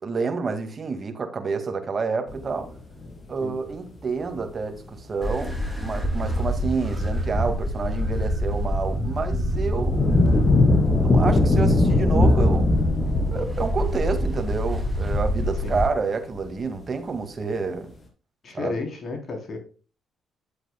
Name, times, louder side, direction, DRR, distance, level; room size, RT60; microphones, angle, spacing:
voice 1, 0.0-2.7 3.3-10.1 10.9-12.8 13.3-17.9 18.5-18.7, right 4 dB, 40° right, 2.0 m, -29 dB
sound 1, 2.3-3.1 4.2-4.4 9.4-15.6 16.3-16.5, left 2 dB, 30° left, 3.1 m, -21 dB
sound 2, 5.2-15.9, equal, 5° left, 2.7 m, -26 dB
voice 2, 18.4-19.6, left 3 dB, 45° left, 3.5 m, -32 dB
10.5 x 8.0 x 2.3 m
cardioid pair, 90°, 0 cm